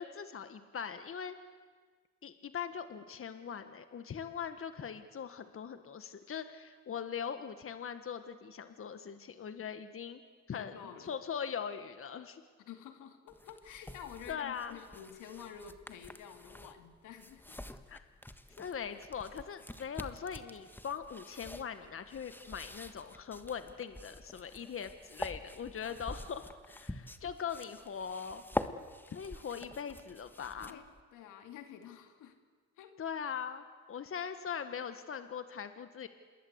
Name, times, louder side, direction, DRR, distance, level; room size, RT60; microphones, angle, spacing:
voice 1, 0.0-1.4 2.2-10.2 10.5-12.4 14.3-14.8 17.9-18.0 18.6-28.4 29.1-30.8 33.0-36.1, left 7 dB, 45° left, 9 dB, 1.6 m, -41 dB
voice 2, 10.5-11.1 12.7-17.6 25.8-26.3 29.9-30.0 30.6-30.8 31.1-32.4 32.8-33.0, left 8 dB, 90° left, 6 dB, 2.6 m, -50 dB
sound 1, 13.3-31.0, left 1 dB, 5° left, 1.4 m, -46 dB
27.5 x 21.5 x 8.2 m, 1.5 s
cardioid pair, 90°, 30 cm